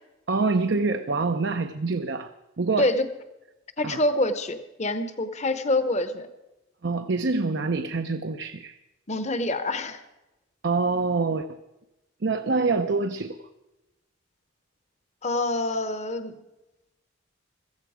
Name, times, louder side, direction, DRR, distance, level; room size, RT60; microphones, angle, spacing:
voice 1, 0.3-2.3 2.6-2.9 3.8-4.0 6.8-8.8 10.6-11.6 12.2-13.4, right 3 dB, 55° right, 8 dB, 0.6 m, -26 dB
voice 2, 3.8-6.3 9.1-10.0 15.2-16.4, left 2 dB, 35° left, 11 dB, 0.9 m, -26 dB
16.0 x 14.5 x 5.0 m, 1.0 s
head